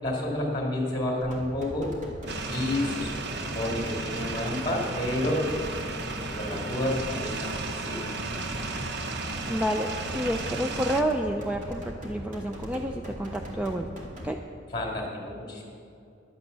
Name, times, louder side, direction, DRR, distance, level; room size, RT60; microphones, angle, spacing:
voice 1, 0.0-1.9 2.5-3.2 3.5-5.5 6.4-8.0 14.7-15.6, left 1 dB, 25° left, -1 dB, 2.5 m, -30 dB
sound 1, 1.2-14.3, equal, 40° right, 2.2 m, -40 dB
sound 2, 2.3-11.0, right 3 dB, 60° right, 0.9 m, -34 dB
voice 2, 9.5-14.4, equal, 5° right, 3 dB, 0.4 m, -30 dB
11.0 x 8.8 x 6.8 m, 2.6 s
head